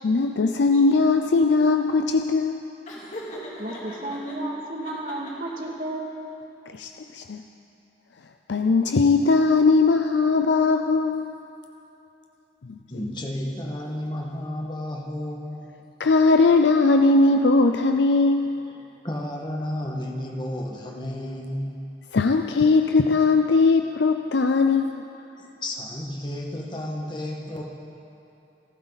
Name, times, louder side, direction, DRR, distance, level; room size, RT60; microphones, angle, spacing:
voice 1, 0.0-2.6 6.7-7.4 8.5-11.4 12.7-12.8 16.0-18.6 22.1-25.0, left 3 dB, 80° left, 6 dB, 0.5 m, -19 dB
Laughter, 2.9-4.4 4.8-5.7, equal, 40° left, 2.8 m, -39 dB
voice 2, 3.6-6.1, right 1 dB, 50° right, -1 dB, 2.2 m, -32 dB
voice 3, 12.9-15.8 18.7-21.8 25.4-27.6, left 1 dB, 25° left, 0 dB, 1.7 m, -32 dB
26.5 x 12.0 x 4.1 m, 2.8 s
head